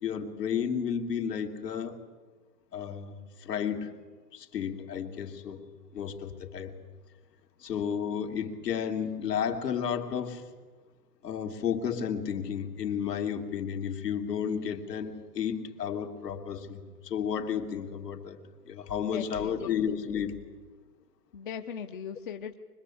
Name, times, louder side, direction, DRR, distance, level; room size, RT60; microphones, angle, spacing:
voice 1, 0.0-2.0 2.7-3.1 3.4-4.0 4.3-5.6 5.9-6.7 7.6-10.5 11.2-18.4 18.7-20.4, left 8 dB, 75° left, 4 dB, 3.1 m, -32 dB
voice 2, 19.1-19.8 21.3-22.5, left 7 dB, 30° left, 6 dB, 0.7 m, -39 dB
24.5 x 21.5 x 8.5 m, 1.4 s
hypercardioid pair, 165°, 48 cm